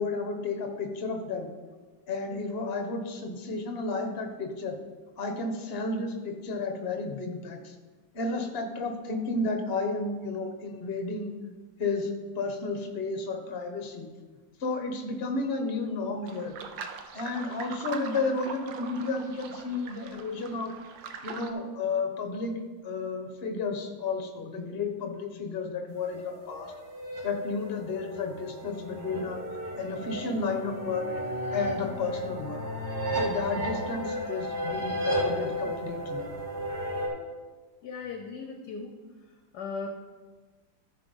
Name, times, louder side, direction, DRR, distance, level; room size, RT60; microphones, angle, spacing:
voice 1, 0.0-1.5 2.1-4.8 5.2-7.7 8.1-11.3 11.8-12.1 12.3-14.1 14.6-16.5 17.1-20.7 21.2-22.6 22.8-26.7 27.2-29.4 29.7-31.1 31.5-32.7 33.1-36.3, left 3 dB, 40° left, 5 dB, 1.1 m, -32 dB
sound 1, 16.3-21.5, right 6 dB, 75° right, 1.4 m, -42 dB
sound 2, 26.0-37.1, equal, 55° right, 2.4 m, -34 dB
voice 2, 37.8-39.0 39.5-39.9, left 5 dB, 65° left, 4 dB, 1.2 m, -37 dB
13.5 x 4.6 x 5.4 m, 1.3 s
omnidirectional pair, 2.0 m